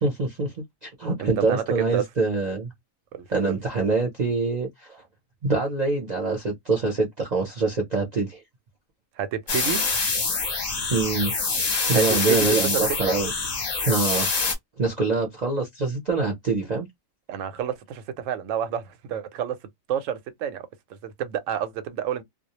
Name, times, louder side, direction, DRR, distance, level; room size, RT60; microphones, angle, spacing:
voice 1, 0.0-0.5 0.8-2.7 3.3-5.0 5.4-8.4 10.9-13.3 13.8-14.3 14.8-16.9, right 3 dB, 40° right, 0.6 m, -25 dB
voice 2, 1.2-2.0 3.1-3.6 9.2-9.8 11.9-13.1 17.3-19.6 19.9-22.2, right 9 dB, 70° right, 0.9 m, -29 dB
sound 1, 9.5-14.5, left 4 dB, 40° left, 0.7 m, -25 dB
2.3 x 2.1 x 2.8 m
omnidirectional pair, 1.4 m